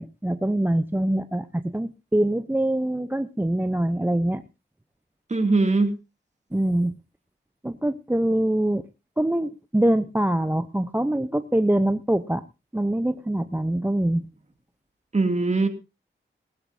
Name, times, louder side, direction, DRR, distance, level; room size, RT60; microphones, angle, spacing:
voice 1, 0.0-4.4 6.5-6.9 7.6-8.9 9.2-12.4 12.7-14.2, right 1 dB, 10° right, 11 dB, 0.7 m, -24 dB
voice 2, 5.3-5.9 15.1-15.7, right 3 dB, 35° right, 7 dB, 2.4 m, -21 dB
19.0 x 12.5 x 2.7 m, 0.27 s
cardioid pair, 65°, 20 cm